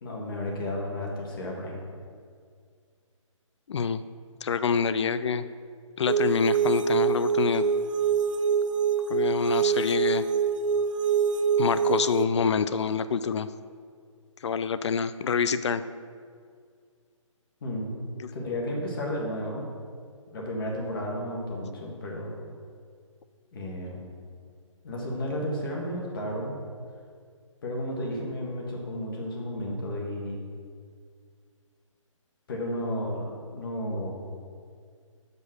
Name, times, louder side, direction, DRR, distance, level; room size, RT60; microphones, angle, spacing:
voice 1, 0.0-1.8 17.6-17.9 18.3-19.7 20.3-22.4 23.5-24.1 24.8-26.6 27.6-30.4 32.5-34.2, left 1 dB, 40° left, -2 dB, 1.6 m, -33 dB
voice 2, 3.7-4.0 4.4-5.4 6.0-7.6 9.1-10.2 11.6-13.5 14.4-15.8, left 6 dB, 55° left, 13 dB, 0.4 m, -26 dB
sound 1, 6.1-12.3, right 6 dB, 70° right, 0.5 m, -25 dB
6.2 x 5.3 x 6.3 m, 2.1 s
hypercardioid pair, 160°, 17 cm